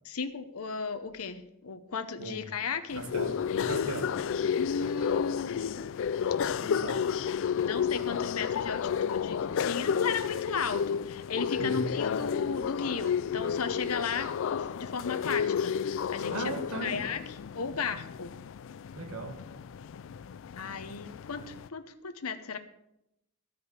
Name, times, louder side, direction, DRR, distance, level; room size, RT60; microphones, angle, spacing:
voice 1, 0.0-3.0 4.5-5.9 7.5-17.2 17.5-18.3 20.6-22.6, left 5 dB, 85° left, 0.8 m, -35 dB
sound 1, 2.9-21.7, left 7 dB, 60° left, 0.4 m, -32 dB
voice 2, 3.0-4.2 6.6-7.1 11.6-12.0 16.3-17.1 18.9-19.4, right 1 dB, 85° right, 1.7 m, -37 dB
13.5 x 5.2 x 8.1 m
head